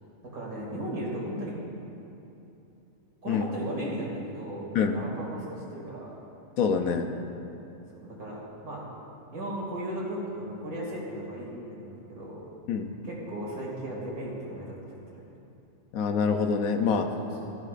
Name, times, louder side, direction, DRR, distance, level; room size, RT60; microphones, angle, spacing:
voice 1, 0.2-1.6 3.2-6.2 7.9-8.8 9.3-12.4 13.0-15.2 17.2-17.5, right 1 dB, 90° right, -4 dB, 3.0 m, -36 dB
voice 2, 6.6-7.1 12.7-12.9 15.9-17.1, left 5 dB, 80° left, 5 dB, 1.2 m, -25 dB
15.5 x 13.0 x 2.5 m, 2.9 s
omnidirectional pair, 1.5 m